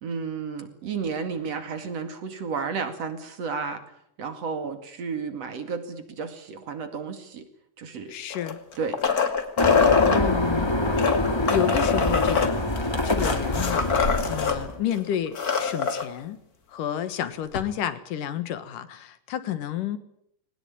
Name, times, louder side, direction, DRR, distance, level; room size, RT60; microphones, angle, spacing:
voice 1, 0.0-3.8 4.2-7.4 7.8-8.1 8.8-9.0, right 5 dB, 55° right, 8 dB, 3.3 m, -32 dB
voice 2, 8.1-8.6 9.8-10.7 11.5-12.6 13.0-16.4 16.7-20.0, left 10 dB, 85° left, 12 dB, 3.1 m, -30 dB
sound 1, 8.3-10.2 10.9-14.6 14.9-15.0 15.3-16.0 17.5-17.6, left 6 dB, 30° left, 2.3 m, -24 dB
sound 2, 9.6-14.8, left 1 dB, 10° left, 1.6 m, -25 dB
21.5 x 19.5 x 9.2 m, 0.72 s
omnidirectional pair, 3.7 m